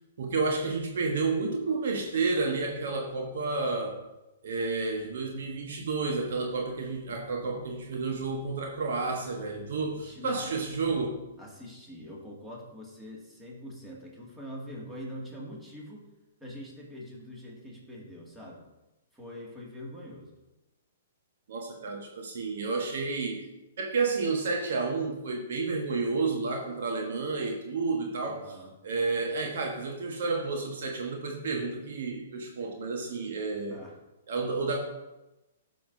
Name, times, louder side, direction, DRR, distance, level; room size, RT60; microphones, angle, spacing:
voice 1, 0.2-4.0 4.4-11.2 21.5-23.4 23.8-28.4 28.8-33.8 34.3-34.8, right 4 dB, 60° right, 1 dB, 1.2 m, -31 dB
voice 2, 9.9-11.0 11.4-16.1 16.4-18.7 19.1-20.3 28.2-28.7 33.7-33.9, equal, 10° right, -3 dB, 2.2 m, -44 dB
11.5 x 6.1 x 2.7 m, 1.0 s
figure-of-eight pair, 115°, 0 cm